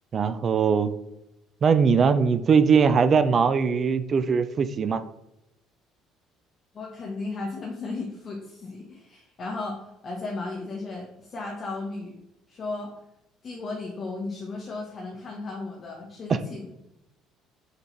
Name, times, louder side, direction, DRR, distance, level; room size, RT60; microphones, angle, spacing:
voice 1, 0.1-0.9 1.6-5.0 16.3-16.4, right 6 dB, 40° right, 11 dB, 0.5 m, -21 dB
voice 2, 6.7-12.1 12.5-12.9 13.4-16.7, left 3 dB, 40° left, -2 dB, 1.4 m, -35 dB
6.7 x 4.4 x 4.4 m, 0.87 s
figure-of-eight pair, 55°, 0 cm